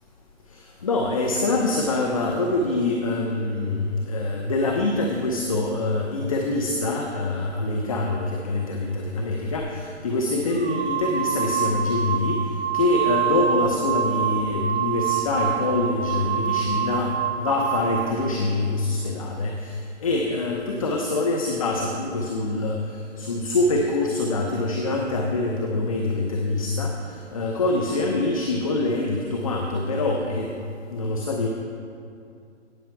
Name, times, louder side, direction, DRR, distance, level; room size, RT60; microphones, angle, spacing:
voice 1, 0.5-12.5 12.7-30.5 30.9-31.5, left 2 dB, 30° left, 1 dB, 0.7 m, -25 dB
sound 1, 9.6-9.7 10.5-18.2, right 9 dB, 65° right, 0.8 m, -26 dB
17.0 x 6.8 x 4.6 m, 2.5 s
hypercardioid pair, 165°, 36 cm